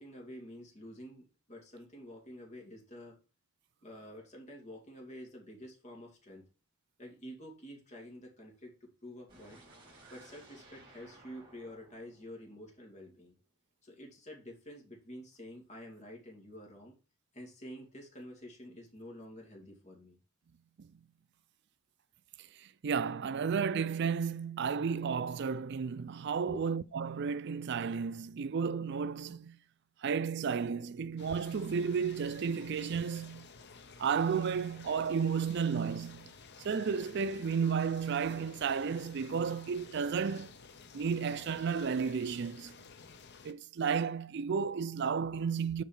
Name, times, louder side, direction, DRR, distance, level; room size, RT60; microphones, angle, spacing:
voice 1, 0.0-3.2 3.8-6.4 7.0-9.6 10.1-13.3 13.8-16.9 17.3-20.2 26.4-26.6, equal, 35° left, 2.5 m, -49 dB
sound 1, 9.3-13.3, right 2 dB, 25° right, 4.1 m, -58 dB
voice 2, 22.8-29.6 30.0-33.5 34.0-36.3 36.6-40.5 40.9-42.7 43.4-45.8, right 6 dB, 55° right, 0.4 m, -33 dB
sound 2, 31.2-43.5, left 5 dB, 55° left, 0.9 m, -53 dB
7.4 x 4.7 x 5.6 m
head